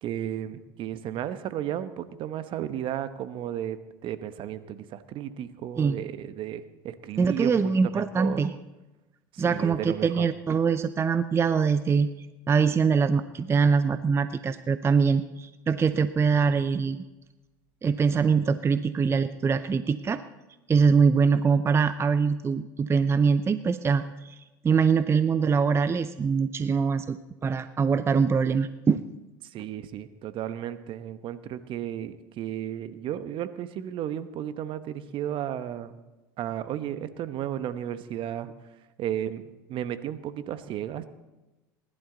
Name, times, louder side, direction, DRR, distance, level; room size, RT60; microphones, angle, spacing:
voice 1, 0.0-3.8 4.0-8.4 9.3-10.3 29.4-36.0 36.4-38.5 39.0-41.1, right 11 dB, 50° right, 12 dB, 1.0 m, -34 dB
voice 2, 7.2-8.5 9.4-12.1 12.5-17.0 17.8-20.2 20.7-27.2 27.4-29.0, right 5 dB, 25° right, 12 dB, 0.6 m, -23 dB
19.5 x 11.5 x 3.9 m, 1.1 s
hypercardioid pair, 85°, 11 cm